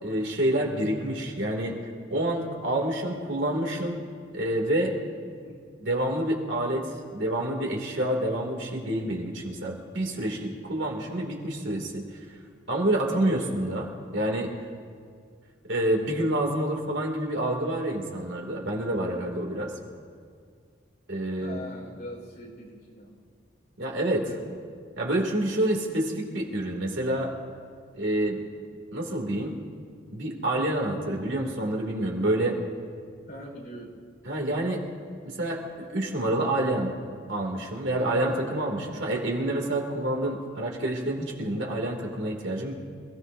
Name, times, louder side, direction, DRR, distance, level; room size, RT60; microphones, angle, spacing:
voice 1, 0.0-1.8 2.1-4.0 4.3-4.9 5.8-12.0 12.7-14.5 15.7-19.7 21.1-21.6 23.8-24.3 25.0-27.3 27.9-28.4 28.9-29.5 30.1-32.6 34.2-34.8 35.2-36.9 37.3-42.7, right 1 dB, 70° right, 0 dB, 2.6 m, -28 dB
voice 2, 5.3-5.6 13.0-13.3 21.4-23.1 24.2-24.6 33.3-33.9 41.6-41.8, left 1 dB, 55° left, -2 dB, 4.6 m, -42 dB
27.5 x 17.0 x 2.7 m, 2.1 s
head